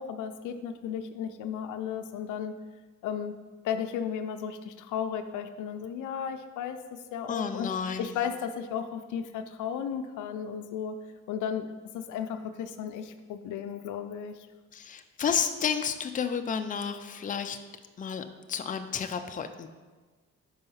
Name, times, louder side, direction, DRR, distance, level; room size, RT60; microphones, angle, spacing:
voice 1, 0.0-2.6 3.0-3.4 3.6-7.7 8.0-11.0 11.3-14.5, left 8 dB, 80° left, 8 dB, 0.6 m, -34 dB
voice 2, 7.3-8.1 14.7-17.6 18.0-19.7, left 7 dB, 25° left, 7 dB, 0.5 m, -31 dB
5.4 x 4.8 x 5.6 m, 1.3 s
cardioid pair, 90°, 30 cm